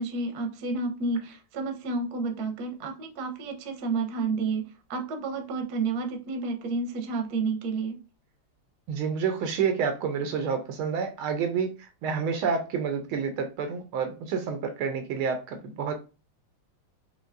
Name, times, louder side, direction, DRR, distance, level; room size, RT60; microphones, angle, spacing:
voice 1, 0.0-8.0, right 3 dB, 60° right, 4 dB, 1.2 m, -30 dB
voice 2, 8.9-11.7 12.0-15.9, right 6 dB, 75° right, 6 dB, 1.5 m, -29 dB
5.2 x 3.0 x 2.5 m, 0.31 s
omnidirectional pair, 2.4 m